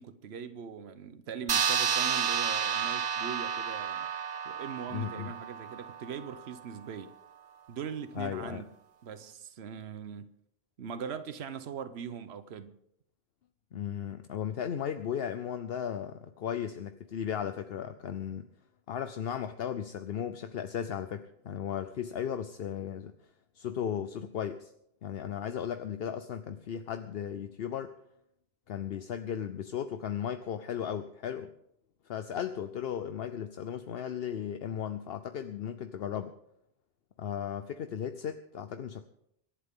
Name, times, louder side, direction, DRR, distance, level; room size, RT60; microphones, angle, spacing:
voice 1, 0.0-4.1 4.4-7.1 7.7-8.7 9.0-10.3 10.8-12.7, right 7 dB, 80° right, 1.1 m, -41 dB
sound 1, 1.5-6.4, right 7 dB, 45° right, 0.8 m, -31 dB
voice 2, 4.9-5.3 8.1-8.6 13.7-18.5 18.9-23.1 23.6-24.7 25.0-27.9 28.7-31.5 32.0-36.3 37.2-39.1, left 8 dB, 70° left, 0.9 m, -36 dB
25.5 x 11.5 x 3.7 m
omnidirectional pair, 1.1 m